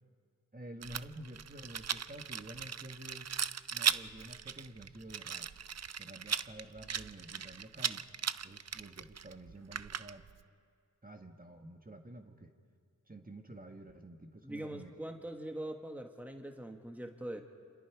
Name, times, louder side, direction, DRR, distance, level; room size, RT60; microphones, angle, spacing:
voice 1, 0.5-3.3 3.7-5.5 6.0-8.0 8.4-10.3 11.0-12.5 13.1-14.9, right 1 dB, 25° right, 4 dB, 1.6 m, -50 dB
Rattle, 0.8-10.4, right 7 dB, 55° right, 0.5 m, -38 dB
voice 2, 14.4-17.4, right 1 dB, 5° right, 4 dB, 1.6 m, -42 dB
27.0 x 27.0 x 4.8 m, 2.1 s
cardioid pair, 45°, 32 cm